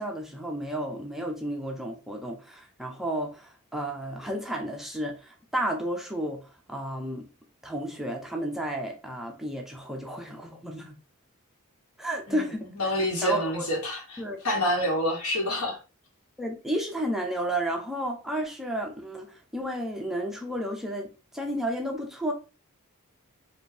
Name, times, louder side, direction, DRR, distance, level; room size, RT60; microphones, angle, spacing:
voice 1, 0.0-6.4 6.7-7.2 7.6-11.0 12.0-12.7 13.2-13.7 14.2-14.4 16.4-22.3, right 1 dB, ahead, 0.6 m, -32 dB
voice 2, 12.7-15.8, equal, 70° left, 1.4 m, -27 dB
4.8 x 2.6 x 2.7 m
head